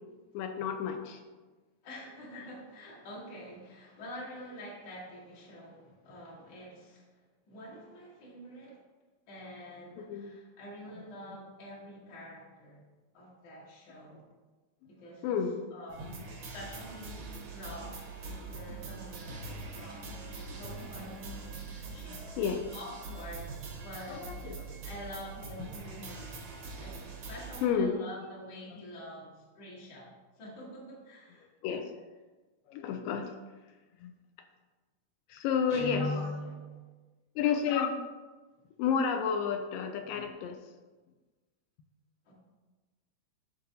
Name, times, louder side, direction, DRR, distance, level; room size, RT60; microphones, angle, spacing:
voice 1, 0.3-1.2 10.0-10.3 15.2-15.6 22.4-22.6 24.1-24.8 27.6-28.0 31.6-31.9 32.7-33.3 34.0-34.1 35.3-36.1 37.4-37.9 38.8-40.6, left 7 dB, 80° left, 6 dB, 2.2 m, -31 dB
voice 2, 1.8-8.8 9.3-12.8 13.1-14.3 14.9-15.4 15.7-23.6 23.8-24.2 24.6-26.4 26.8-31.5 35.7-36.7 42.2-42.3, equal, 55° left, -6 dB, 1.2 m, -47 dB
sound 1, 15.9-27.7, right 3 dB, 70° right, 1.3 m, -43 dB
Guitar, 35.7-36.9, left 2 dB, 30° left, 0.8 m, -36 dB
11.5 x 4.1 x 2.7 m, 1.3 s
omnidirectional pair, 4.1 m